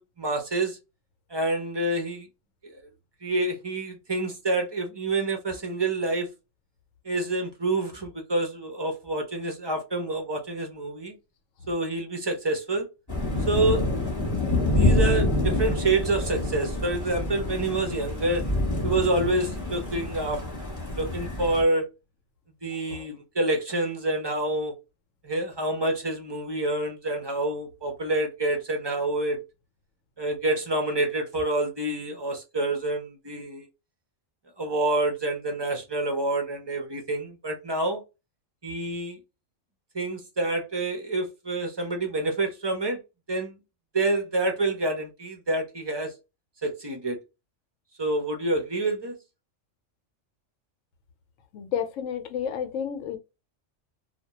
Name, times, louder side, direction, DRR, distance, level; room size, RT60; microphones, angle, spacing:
voice 1, 0.2-0.8 1.3-2.3 2.6-2.8 3.2-6.3 7.0-11.1 11.7-12.9 13.5-13.9 14.7-18.4 18.8-20.4 20.9-21.9 22.6-24.7 25.2-29.4 30.2-33.6 34.6-38.0 38.6-39.2 39.9-43.0 43.3-43.5 43.9-46.1 46.6-47.2 48.0-49.1, right 2 dB, 35° right, 0.4 m, -27 dB
sound 1, 13.1-21.6, left 2 dB, 15° left, 0.9 m, -27 dB
voice 2, 51.5-53.2, left 8 dB, 80° left, 1.0 m, -31 dB
2.3 x 2.2 x 2.7 m
omnidirectional pair, 1.3 m